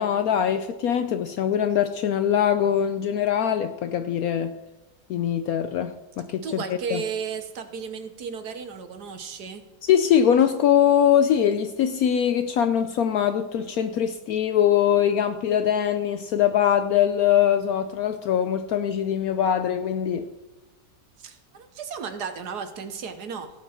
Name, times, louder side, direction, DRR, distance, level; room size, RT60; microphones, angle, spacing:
voice 1, 0.0-4.5 5.1-6.6 6.9-7.0 9.8-20.3, left 9 dB, 70° left, 1.0 m, -22 dB
voice 2, 6.4-9.6 21.2-23.5, right 6 dB, 70° right, 1.5 m, -34 dB
17.0 x 6.8 x 4.4 m
omnidirectional pair, 1.8 m